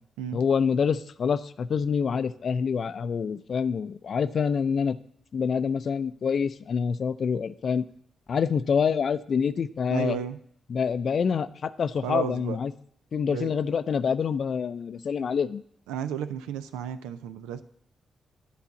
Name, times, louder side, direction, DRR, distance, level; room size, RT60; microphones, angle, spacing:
voice 1, 0.3-5.0 5.3-7.8 8.3-10.2 10.7-12.7 13.1-15.6, left 6 dB, 60° left, 13 dB, 0.4 m, -26 dB
voice 2, 9.9-10.4 12.0-12.6 13.3-13.5 15.9-17.6, right 9 dB, 90° right, 11 dB, 0.4 m, -33 dB
10.5 x 4.0 x 6.9 m, 0.66 s
hypercardioid pair, 45°, 0 cm